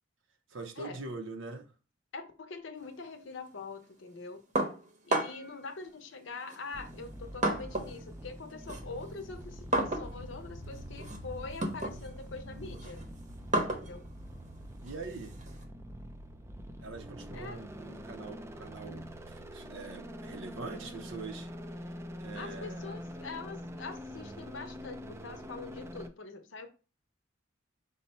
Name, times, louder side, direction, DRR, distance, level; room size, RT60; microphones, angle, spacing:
voice 1, 0.5-1.7 14.8-15.4 16.8-21.5 22.2-23.0, right 3 dB, 80° right, 0.6 m, -43 dB
voice 2, 2.1-4.4 5.0-13.0 13.8-14.1 17.3-17.6 22.3-26.7, left 4 dB, 75° left, 0.7 m, -44 dB
sound 1, 4.6-5.6 6.5-8.0 8.3-15.6, right 1 dB, 40° right, 0.8 m, -34 dB
sound 2, 6.7-26.1, equal, 15° right, 0.3 m, -45 dB
sound 3, 8.9-20.4, equal, 15° left, 0.9 m, -52 dB
5.2 x 2.1 x 4.2 m
head